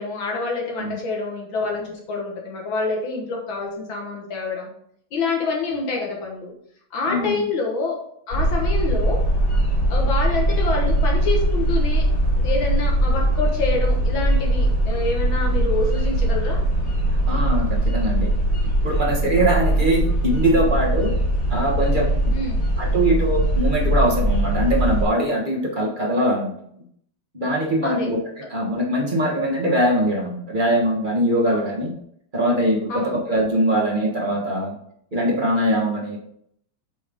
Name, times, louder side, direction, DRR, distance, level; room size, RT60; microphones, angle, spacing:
voice 1, 0.0-4.7 5.1-6.5 6.9-8.0 8.3-9.2 9.9-12.1 12.4-16.6 22.3-22.6 27.8-28.1 31.5-31.6 32.9-33.2, left 3 dB, 80° left, 0 dB, 2.1 m, -27 dB
voice 2, 7.1-7.5 17.3-18.3 18.8-21.1 21.5-22.2 22.8-26.6 27.3-28.2 28.5-31.9 32.3-34.8 35.1-36.2, right 1 dB, 25° right, -1 dB, 1.4 m, -22 dB
sound 1, 8.3-25.1, right 1 dB, 60° left, 3.8 m, -21 dB
7.9 x 5.4 x 3.7 m, 0.68 s
omnidirectional pair, 2.1 m